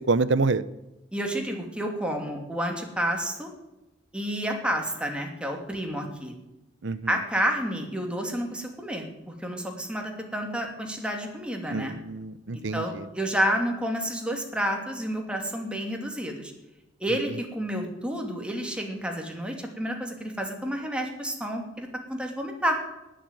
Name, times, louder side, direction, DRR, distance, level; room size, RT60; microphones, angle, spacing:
voice 1, 0.1-0.6 6.8-7.0 11.7-13.0, right 3 dB, 65° right, 16 dB, 0.7 m, -26 dB
voice 2, 1.1-3.5 4.1-6.3 7.1-11.9 12.7-16.5 17.0-22.8, equal, 5° right, 2 dB, 2.6 m, -30 dB
19.0 x 7.6 x 9.2 m, 0.96 s
head